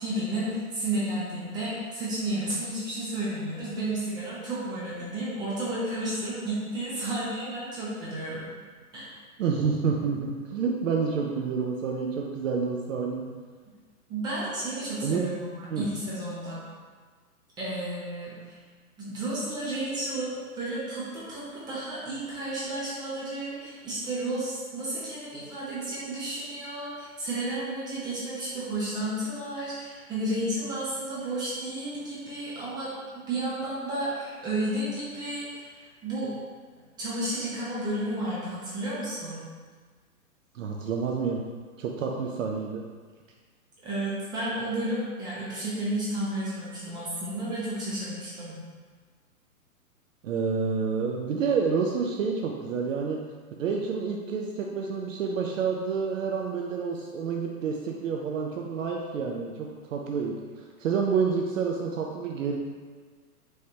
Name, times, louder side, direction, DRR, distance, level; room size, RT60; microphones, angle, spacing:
voice 1, 0.0-8.5 8.9-9.2 14.1-16.6 17.6-18.6 19.0-32.9 33.1-36.3 37.0-39.4 43.8-48.6, right 1 dB, 10° right, -9 dB, 0.5 m, -32 dB
voice 2, 9.4-13.2 15.0-15.3 15.7-15.9 40.5-41.4 41.8-42.8 50.2-53.2 53.6-60.4 60.8-62.6, right 5 dB, 60° right, 0 dB, 0.5 m, -28 dB
4.5 x 3.2 x 2.7 m, 1.5 s
hypercardioid pair, 125°, 45 cm